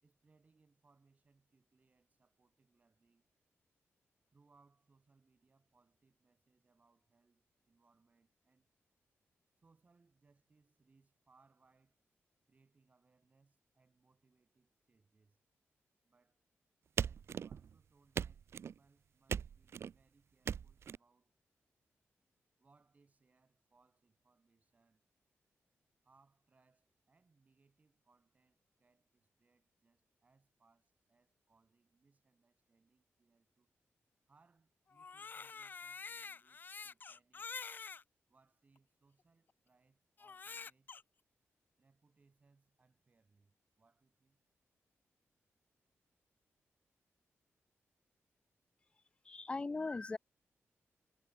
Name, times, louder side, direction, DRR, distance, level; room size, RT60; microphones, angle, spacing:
voice 1, 0.0-3.3 4.3-8.7 9.6-12.0 12.5-15.4 16.0-16.4 17.0-21.3 22.6-25.0 26.0-33.7 34.3-37.5 38.3-40.9 41.8-44.4, right 4 dB, 30° right, 7.2 m, -73 dB
sound 1, 17.0-17.8 18.2-18.8 19.3-19.9 20.5-21.0, right 7 dB, 60° right, 0.6 m, -39 dB
Crying sobbing, 34.9-38.0 38.8-38.9 40.2-41.0, left 5 dB, 40° left, 1.0 m, -47 dB
voice 2, 49.0-50.2, left 3 dB, 20° left, 0.5 m, -40 dB
wide cardioid pair, 140°, 5 cm